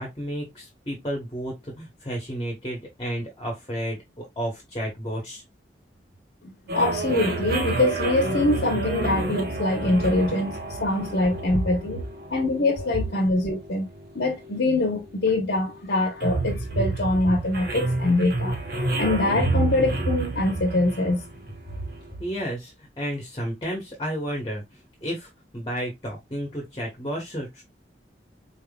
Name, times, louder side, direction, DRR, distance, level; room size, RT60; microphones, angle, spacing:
voice 1, 0.0-5.4 22.2-27.6, equal, 25° left, 1.1 m, -32 dB
voice 2, 6.4-12.0 12.3-13.9 14.1-18.6 19.0-21.2, left 2 dB, 70° left, 1.0 m, -24 dB
sound 1, 6.7-22.1, right 2 dB, 55° right, 0.8 m, -30 dB
4.3 x 3.5 x 2.3 m
head